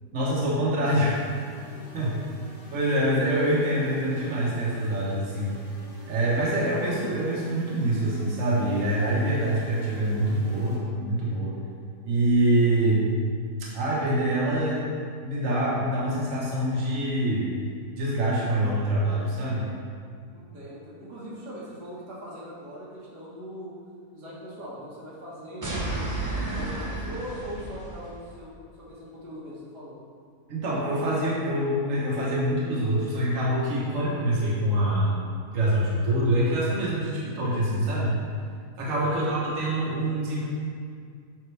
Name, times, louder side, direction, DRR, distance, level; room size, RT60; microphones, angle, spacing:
voice 1, 0.1-1.2 1.9-2.2 2.7-5.5 6.1-11.6 12.0-13.1 13.7-14.9 15.2-17.6 18.0-19.7 30.5-35.2 35.5-38.1 38.8-40.5, right 1 dB, 55° right, -6 dB, 1.5 m, -25 dB
sound 1, 1.0-10.8, equal, 20° left, 1.7 m, -48 dB
voice 2, 20.3-23.7 24.1-26.0 26.5-28.5 28.8-30.0 38.8-39.0, equal, 80° right, -7 dB, 2.1 m, -41 dB
sound 2, 25.6-28.2, right 2 dB, 15° right, 0.7 m, -32 dB
7.6 x 5.7 x 3.3 m, 2.1 s
omnidirectional pair, 1.7 m